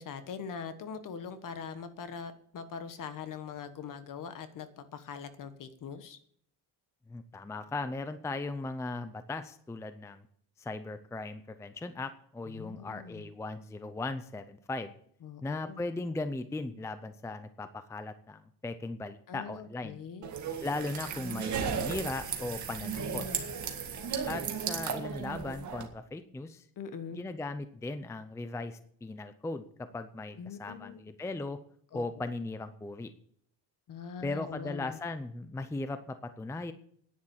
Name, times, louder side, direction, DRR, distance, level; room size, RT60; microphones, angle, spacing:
voice 1, 0.0-6.2 12.5-13.3 15.2-15.8 19.3-20.3 23.0-23.4 26.8-27.2 30.4-31.0 31.9-32.3 33.9-35.0, left 6 dB, 50° left, 11 dB, 1.4 m, -42 dB
voice 2, 7.1-10.2 10.6-14.9 15.4-20.0 20.6-23.2 24.3-26.7 27.1-31.6 31.9-33.1 34.2-36.7, left 2 dB, 5° left, 11 dB, 0.5 m, -38 dB
sound 1, 20.2-25.9, right 7 dB, 45° right, 1.9 m, -35 dB
10.5 x 10.0 x 7.2 m, 0.64 s
cardioid pair, 170°, 40 cm